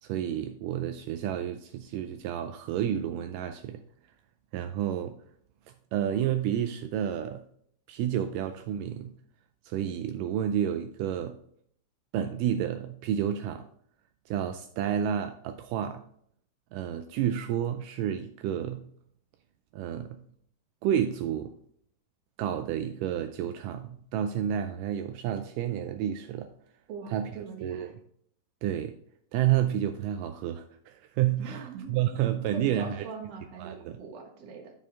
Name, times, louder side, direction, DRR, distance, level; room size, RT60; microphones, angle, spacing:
voice 1, 0.0-3.8 4.5-5.2 5.9-7.4 7.9-9.2 9.6-11.4 12.1-13.7 14.3-16.0 16.7-18.9 19.7-20.2 20.8-21.5 22.4-26.5 27.1-27.3 27.6-27.9 28.6-29.0 29.3-33.1 33.6-34.0, right 10 dB, 85° right, 7 dB, 2.1 m, -30 dB
voice 2, 26.9-27.9 31.4-32.1 32.5-34.7, right 5 dB, 55° right, 1 dB, 2.4 m, -41 dB
12.0 x 4.3 x 3.6 m, 0.63 s
omnidirectional pair, 3.8 m